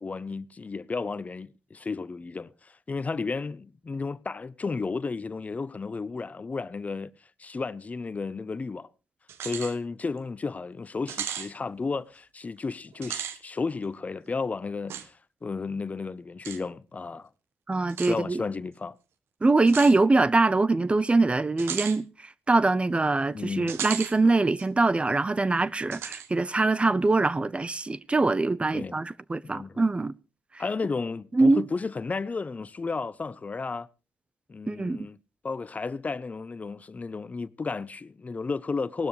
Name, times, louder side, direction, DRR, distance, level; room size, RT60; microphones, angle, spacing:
voice 1, 0.0-7.1 7.4-8.9 9.4-17.3 18.1-19.0 23.3-23.7 28.7-29.0 29.4-29.8 30.6-33.9 34.5-35.2 35.4-39.1, left 4 dB, 35° left, 0.7 m, -33 dB
sound 1, 9.3-9.7 10.2-10.3 11.1-11.5 12.9-13.4 14.9-15.1 16.4-16.6 17.9-18.1 19.7-20.0 21.6-22.0 23.7-24.1 24.6-24.7 25.9-26.3, right 9 dB, 80° right, 1.2 m, -35 dB
voice 2, 17.7-18.4 19.4-30.1 31.3-31.6 34.7-35.1, right 3 dB, 25° right, 0.7 m, -23 dB
18.0 x 12.5 x 3.2 m
supercardioid pair, 50°, 4 cm